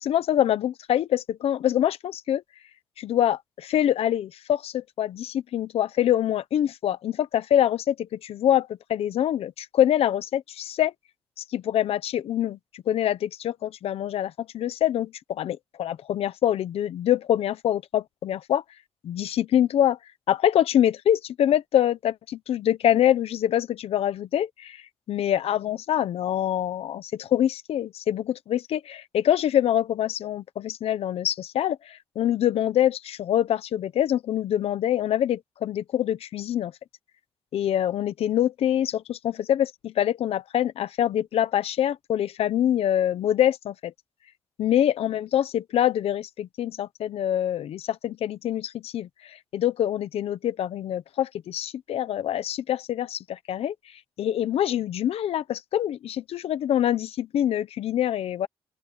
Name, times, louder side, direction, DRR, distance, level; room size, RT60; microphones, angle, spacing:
voice 1, 0.0-2.4 3.0-10.9 11.5-12.6 12.9-18.6 19.0-20.0 20.3-24.8 25.1-36.7 37.5-43.9 44.6-49.1 49.5-53.7 54.2-58.5, left 11 dB, 85° left, 1.0 m, -25 dB
open air
wide cardioid pair, 180°, 10 cm